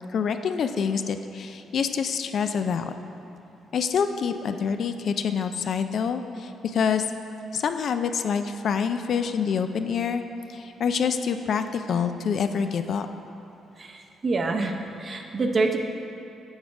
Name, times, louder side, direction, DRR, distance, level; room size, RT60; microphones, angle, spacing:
voice 1, 0.1-2.9 3.7-7.1 7.5-10.2 10.5-13.1, left 6 dB, 60° left, 8 dB, 0.3 m, -26 dB
voice 2, 13.8-14.7 15.0-15.8, right 3 dB, 40° right, 4 dB, 0.6 m, -26 dB
7.2 x 5.1 x 4.7 m, 2.8 s
cardioid pair, 90°, 0 cm